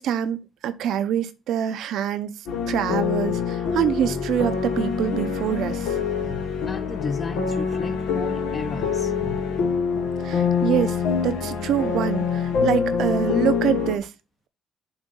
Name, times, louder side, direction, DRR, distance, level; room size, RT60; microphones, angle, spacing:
voice 1, 0.0-6.0 10.2-14.1, right 9 dB, 70° right, 0.7 m, -25 dB
sound 1, 2.5-14.0, left 6 dB, 80° left, 1.0 m, -25 dB
voice 2, 6.6-9.1, left 4 dB, 35° left, 0.9 m, -33 dB
7.1 x 2.6 x 5.4 m
supercardioid pair, 65°, 0 cm